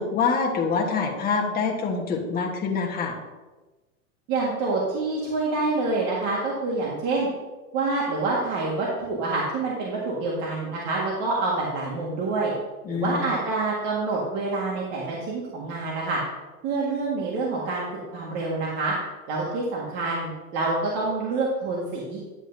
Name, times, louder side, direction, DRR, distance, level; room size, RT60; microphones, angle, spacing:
voice 1, 0.0-3.1 12.8-13.3, left 5 dB, 20° left, 0 dB, 1.4 m, -25 dB
voice 2, 4.3-7.3 7.7-12.5 12.9-16.2 16.6-18.9 19.3-22.2, right 3 dB, 40° right, -4 dB, 1.8 m, -27 dB
10.5 x 7.8 x 2.7 m, 1.2 s
supercardioid pair, 140°, 45 cm